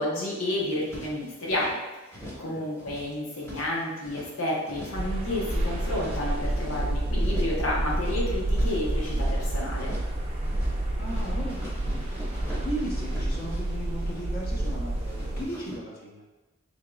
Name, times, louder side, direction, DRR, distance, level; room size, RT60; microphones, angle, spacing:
voice 1, 0.0-1.8 2.1-9.9, left 1 dB, 85° left, -3 dB, 1.0 m, -31 dB
sound 1, 0.6-1.7 2.1-2.5 2.8-4.3 4.6-5.1 5.3-6.8 7.2-7.6 7.9-9.4 9.7-10.2 10.4-10.8 11.1-14.7 15.0-15.8, equal, 10° left, 0.9 m, -44 dB
sound 2, 4.9-15.4, right 1 dB, 30° right, 0.5 m, -29 dB
voice 2, 11.0-16.2, right 1 dB, 45° left, -3 dB, 0.7 m, -37 dB
3.7 x 3.5 x 2.3 m, 1.2 s
head